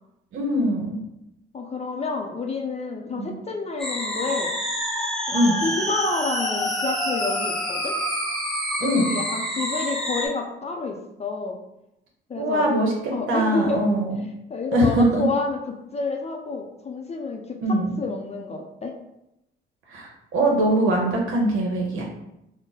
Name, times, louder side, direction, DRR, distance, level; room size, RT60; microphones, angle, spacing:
voice 1, 0.3-1.0 3.1-3.4 5.3-5.6 8.8-9.2 12.4-12.9 13.3-14.3 14.7-15.2 17.6-18.0 19.9-22.0, right 1 dB, 80° right, -1 dB, 0.8 m, -22 dB
voice 2, 1.5-4.5 5.3-8.0 8.8-11.6 12.3-12.7 13.1-13.8 14.5-19.0, left 4 dB, 30° left, 2 dB, 0.5 m, -29 dB
sound 1, 3.8-10.3, equal, ahead, 1.0 m, -27 dB
3.7 x 2.1 x 3.9 m, 0.86 s
cardioid pair, 90°, 20 cm